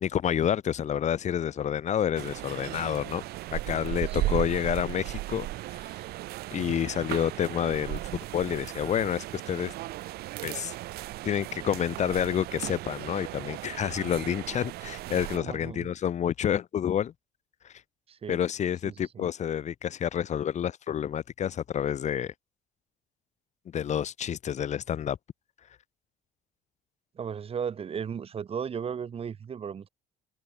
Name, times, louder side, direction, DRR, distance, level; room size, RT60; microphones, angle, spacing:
voice 1, 0.0-3.2 3.5-6.0 6.5-8.0 8.3-9.7 10.4-10.7 11.2-17.1 17.6-17.7 18.3-22.3 23.7-25.2, left 9 dB, 45° left, 0.7 m, -29 dB
sound 1, 2.1-15.4, right 17 dB, 70° right, 0.5 m, -36 dB
voice 2, 15.3-15.9 18.1-18.4 18.8-19.3 27.1-29.9, right 7 dB, 35° right, 0.9 m, -36 dB
cardioid pair, 110°, 17 cm